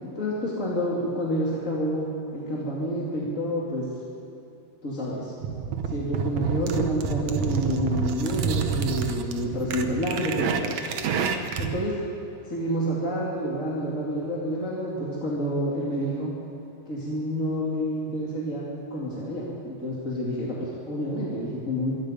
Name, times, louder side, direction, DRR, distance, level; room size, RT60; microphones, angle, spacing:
voice 1, 0.0-2.1 2.3-3.9 4.8-5.3 5.9-10.8 11.6-11.9 12.5-16.3 16.9-18.6 18.9-22.0, equal, 25° left, -5 dB, 2.3 m, -28 dB
sound 1, 5.4-11.8, right 6 dB, 65° right, 1.8 m, -28 dB
26.0 x 22.0 x 5.2 m, 2.6 s
omnidirectional pair, 4.5 m